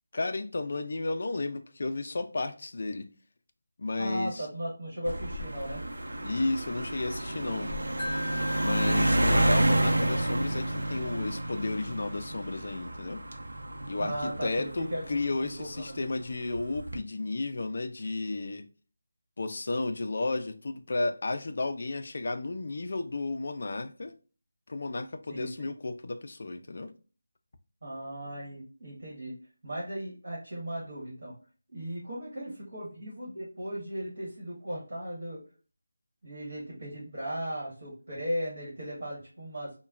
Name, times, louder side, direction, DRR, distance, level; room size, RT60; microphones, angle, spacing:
voice 1, 0.1-3.1 3.8-4.5 6.2-7.7 8.6-13.2 13.9-18.7 19.4-24.1 24.7-26.9, left 2 dB, 45° left, 0.4 m, -33 dB
voice 2, 4.0-5.8 14.0-16.0 25.3-25.7 27.8-29.3 29.6-31.3 31.7-35.4 36.2-39.7, equal, 45° right, 1.4 m, -37 dB
sound 1, 5.1-15.8 16.6-17.0, right 1 dB, 80° right, 0.6 m, -30 dB
Wind chime, 8.0-11.1, left 2 dB, 10° left, 1.4 m, -40 dB
3.0 x 2.2 x 2.3 m
figure-of-eight pair, 175°, 0 cm